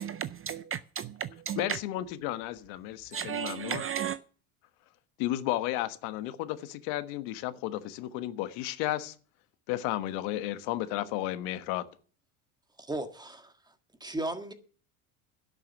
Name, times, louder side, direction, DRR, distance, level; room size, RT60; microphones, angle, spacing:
voice 1, 0.0-1.8 3.1-4.2, right 8 dB, 30° right, 0.5 m, -34 dB
voice 2, 1.6-3.8 5.2-9.1 9.7-11.8, left 14 dB, 70° left, 1.3 m, -33 dB
voice 3, 12.8-13.5 14.0-14.5, right 1 dB, 10° right, 1.7 m, -35 dB
11.5 x 6.7 x 8.8 m
supercardioid pair, 100°, 44 cm